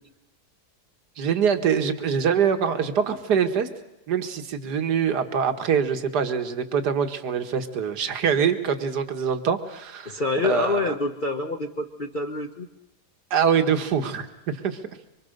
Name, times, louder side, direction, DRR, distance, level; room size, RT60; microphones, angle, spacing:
voice 1, 1.2-3.7 4.1-10.9 13.3-14.8, right 7 dB, 75° right, 7 dB, 2.1 m, -24 dB
voice 2, 10.0-12.7, left 3 dB, 35° left, 3 dB, 1.0 m, -27 dB
25.0 x 25.0 x 6.6 m, 0.95 s
omnidirectional pair, 1.8 m